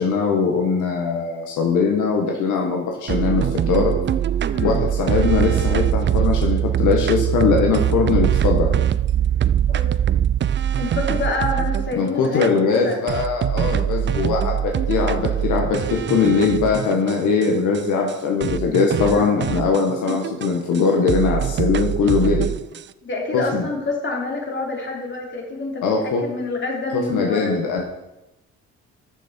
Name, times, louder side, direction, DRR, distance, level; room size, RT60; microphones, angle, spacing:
voice 1, 0.0-3.9 4.6-8.8 12.0-22.5 23.3-23.7 25.8-26.2 26.9-27.9, left 5 dB, 85° left, 0 dB, 1.8 m, -21 dB
sound 1, 3.1-12.0 12.4-12.5 13.1-17.5 17.7-17.8 18.1-18.2 18.4-20.8 21.1-22.8, right 10 dB, 40° right, 0.4 m, -22 dB
voice 2, 10.8-13.0 19.1-19.5 23.0-25.8 26.2-27.6, left 2 dB, 40° left, 0 dB, 3.2 m, -27 dB
13.0 x 7.0 x 4.7 m, 0.90 s
cardioid pair, 90°, 30 cm